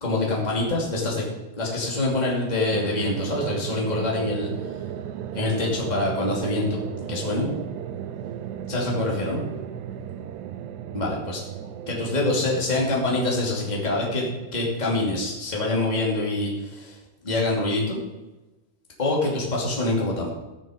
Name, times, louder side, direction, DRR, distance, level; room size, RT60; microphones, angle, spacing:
voice 1, 0.0-1.2 1.5-4.5 5.3-6.8 7.1-7.5 8.7-9.4 10.9-11.4 11.9-16.9 17.2-18.0 19.0-20.3, left 2 dB, 30° left, -3 dB, 0.7 m, -25 dB
sound 1, 2.7-14.8, right 9 dB, 90° right, 2.5 m, -35 dB
15.0 x 7.3 x 5.1 m, 1.1 s
omnidirectional pair, 5.6 m